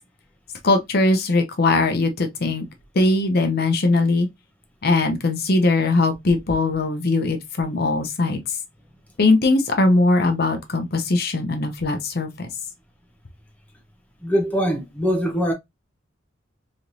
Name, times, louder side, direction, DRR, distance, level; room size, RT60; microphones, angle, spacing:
voice 1, 0.6-2.6 2.9-4.3 4.8-8.4 9.2-12.5, left 2 dB, 55° left, 0.6 m, -20 dB
voice 2, 14.2-15.5, equal, 10° left, 0.7 m, -22 dB
3.1 x 2.9 x 2.5 m
head